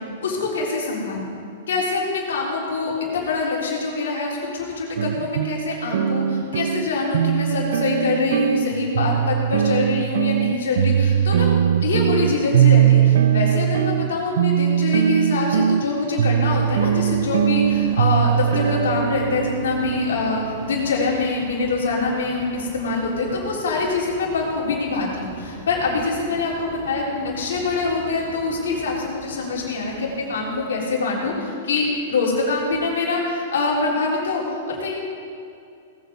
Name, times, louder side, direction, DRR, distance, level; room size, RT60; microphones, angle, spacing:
voice 1, 0.2-1.2 1.7-11.5 11.8-35.0, left 3 dB, 80° left, -3 dB, 3.7 m, -24 dB
sound 1, 5.0-21.2, right 9 dB, 75° right, 0.5 m, -21 dB
sound 2, 16.4-30.7, right 2 dB, 50° right, 3.4 m, -42 dB
18.5 x 7.9 x 5.2 m, 2.5 s
hypercardioid pair, 135°, 0 cm